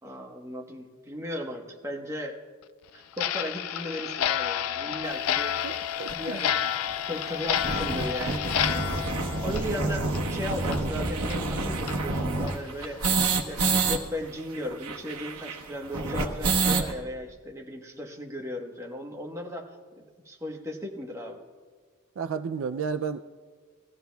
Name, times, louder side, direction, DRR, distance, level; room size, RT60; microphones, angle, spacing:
voice 1, 0.0-2.4 2.9-5.7 5.9-6.7 7.1-8.8 9.1-13.1 13.5-19.7 20.0-21.4, left 1 dB, 15° right, 1.1 m, -36 dB
Clock, 3.1-10.4 10.7-10.8 11.3-11.4 11.9-12.0 12.5-12.6 13.0-13.1 13.6-13.8, left 10 dB, 80° left, 0.3 m, -30 dB
sound 1, 5.3-5.4 6.1-6.2 6.4-6.5 6.8-6.9 7.3-14.0 14.2-14.3 14.5-16.9, right 3 dB, 90° right, 1.1 m, -28 dB
voice 2, 6.0-6.5 8.5-8.7 22.2-23.2, right 6 dB, 60° right, 0.3 m, -32 dB
21.5 x 15.0 x 2.3 m
head